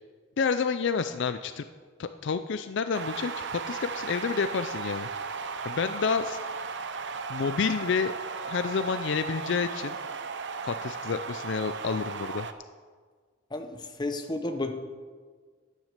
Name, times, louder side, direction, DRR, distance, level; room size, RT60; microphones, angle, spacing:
voice 1, 0.4-1.6 2.0-5.1 5.7-6.4 7.3-8.1 8.5-10.0 10.7-12.5, left 5 dB, 60° left, 10 dB, 0.4 m, -29 dB
sound 1, 2.9-12.5, right 5 dB, 60° right, 0.7 m, -36 dB
voice 2, 13.5-14.7, left 2 dB, 20° left, 6 dB, 1.0 m, -32 dB
10.5 x 9.3 x 6.6 m, 1.6 s
head